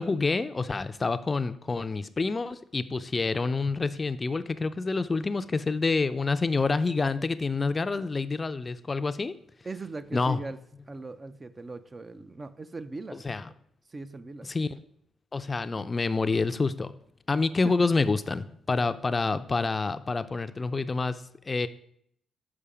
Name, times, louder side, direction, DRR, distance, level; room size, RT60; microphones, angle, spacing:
voice 1, 0.0-9.3 10.1-10.4 13.2-13.4 14.5-14.7 15.3-16.9 17.3-21.7, left 3 dB, 35° left, 12 dB, 0.4 m, -27 dB
voice 2, 9.6-10.6 10.9-13.5 13.9-14.5 17.6-17.8, right 3 dB, 30° right, 11 dB, 0.4 m, -40 dB
6.9 x 5.1 x 4.9 m, 0.68 s
cardioid pair, 70°, 0 cm